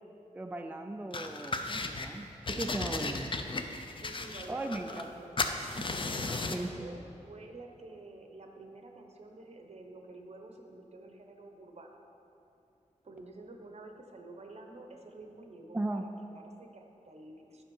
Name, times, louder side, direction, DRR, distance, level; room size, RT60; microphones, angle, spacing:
voice 1, 0.3-3.3 4.5-5.1 5.8-5.9 6.5-6.7 15.7-16.0, right 2 dB, 15° right, 5 dB, 0.3 m, -37 dB
sound 1, 1.1-2.1 2.5-5.1 5.4-6.7, left 3 dB, 40° left, 0.5 m, -35 dB
voice 2, 2.1-3.3 4.0-5.4 5.8-12.0 13.0-17.6, right 2 dB, 55° right, 3 dB, 0.9 m, -49 dB
10.5 x 5.4 x 5.4 m, 2.8 s
wide cardioid pair, 115°, 13 cm